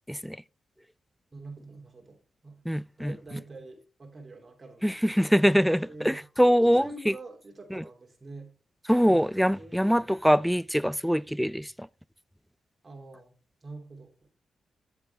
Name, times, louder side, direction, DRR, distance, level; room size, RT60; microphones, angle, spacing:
voice 1, 1.3-2.6 3.0-5.1 5.8-6.2 6.6-8.5 9.0-9.3 9.6-10.1 12.8-13.4 13.6-14.1, right 2 dB, 35° right, 2.8 m, -45 dB
voice 2, 2.7-3.2 4.8-7.1 7.7-7.8 8.9-11.9, equal, ahead, 0.3 m, -24 dB
9.2 x 8.0 x 3.4 m
supercardioid pair, 50°, 0 cm